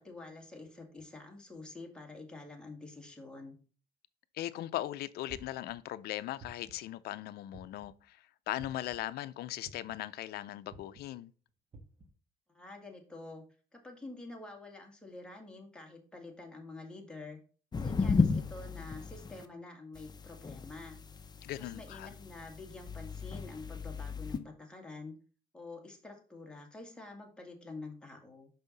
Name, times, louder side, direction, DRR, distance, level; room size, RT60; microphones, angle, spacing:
voice 1, 0.0-3.6 12.5-13.4 13.7-17.4 17.8-21.0 21.6-25.1 25.5-28.5, left 3 dB, 5° left, 1.9 m, -48 dB
voice 2, 4.3-11.3 21.4-22.1, left 14 dB, 70° left, 0.5 m, -39 dB
sound 1, 5.3-5.7 6.4-6.9 7.5-8.0 8.6-9.0 9.6-10.1 10.7-11.0 11.7-12.1, right 2 dB, 35° right, 1.3 m, -52 dB
sound 2, 17.7-19.4 19.9-24.4, left 4 dB, 25° left, 0.7 m, -34 dB
5.6 x 5.6 x 4.0 m
cardioid pair, 110°, 17 cm